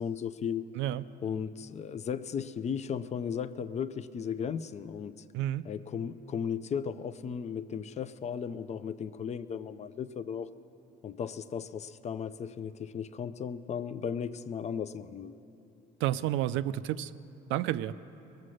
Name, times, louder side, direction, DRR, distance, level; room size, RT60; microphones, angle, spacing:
voice 1, 0.0-0.7 1.2-5.2 5.6-10.5 11.0-15.4, left 7 dB, 35° left, 14 dB, 0.5 m, -36 dB
voice 2, 5.3-5.7 16.0-17.1 17.5-17.9, right 13 dB, 85° right, 13 dB, 0.4 m, -30 dB
21.5 x 7.5 x 6.4 m, 2.7 s
cardioid pair, 110°, 19 cm